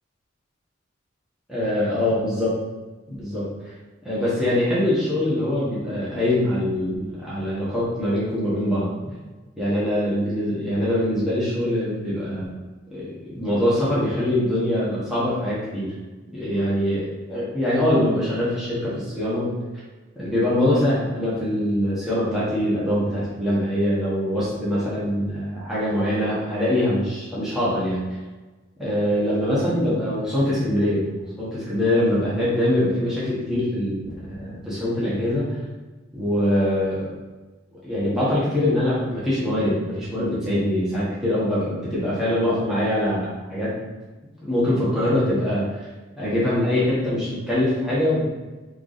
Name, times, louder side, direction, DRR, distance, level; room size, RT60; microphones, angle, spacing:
voice 1, 1.5-2.5 3.2-3.5 4.0-9.1 9.6-12.5 12.9-15.9 16.3-19.5 20.2-28.1 28.8-31.0 31.4-35.6 36.1-37.1 37.8-43.7 44.5-45.7 46.2-48.2, left 1 dB, ahead, -10 dB, 1.3 m, -23 dB
3.9 x 3.4 x 4.0 m, 1.2 s
head